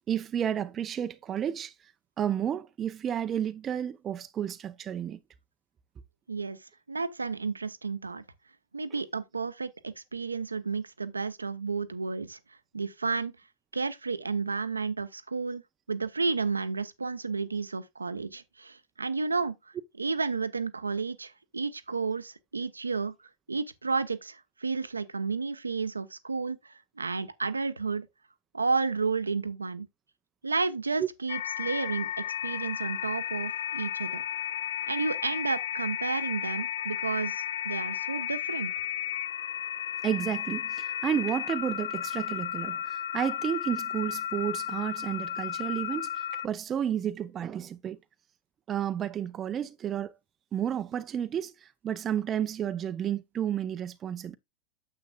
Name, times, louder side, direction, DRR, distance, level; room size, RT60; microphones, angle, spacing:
voice 1, 0.1-1.7 2.2-5.2 31.0-31.1 40.0-46.1 46.4-48.0 48.7-50.1 50.5-54.4, right 9 dB, 25° right, 0.6 m, -31 dB
voice 2, 6.3-6.6 6.9-8.2 8.7-12.4 12.7-13.3 13.7-15.6 15.9-19.6 20.0-23.1 23.5-28.1 28.5-29.9 30.4-34.2 34.9-38.7, right 4 dB, 80° right, 0.8 m, -32 dB
sound 1, 31.3-46.5, left 10 dB, 60° left, 0.3 m, -34 dB
9.2 x 7.7 x 2.4 m
figure-of-eight pair, 90°, 0 cm